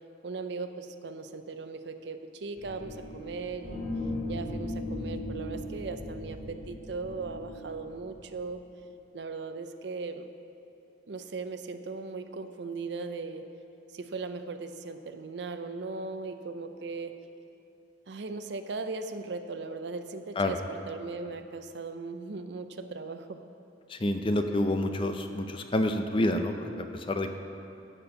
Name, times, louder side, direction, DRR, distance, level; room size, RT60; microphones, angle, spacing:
voice 1, 0.2-3.9 4.3-8.6 9.1-10.3 11.1-13.5 13.9-17.2 18.1-23.4, right 4 dB, 60° right, 8 dB, 0.5 m, -38 dB
sound 1, 2.6-8.6, left 1 dB, 45° left, 1.5 m, -38 dB
voice 2, 23.9-27.4, left 1 dB, 25° left, 7 dB, 0.5 m, -28 dB
12.0 x 4.4 x 7.8 m, 2.7 s
head